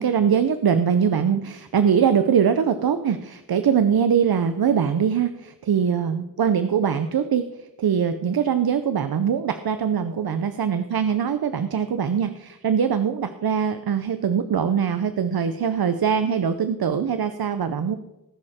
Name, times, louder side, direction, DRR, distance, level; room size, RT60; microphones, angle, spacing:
voice 1, 0.0-18.0, right 7 dB, 80° right, 10 dB, 0.7 m, -22 dB
19.0 x 6.6 x 4.3 m, 0.95 s
wide cardioid pair, 80°, 36 cm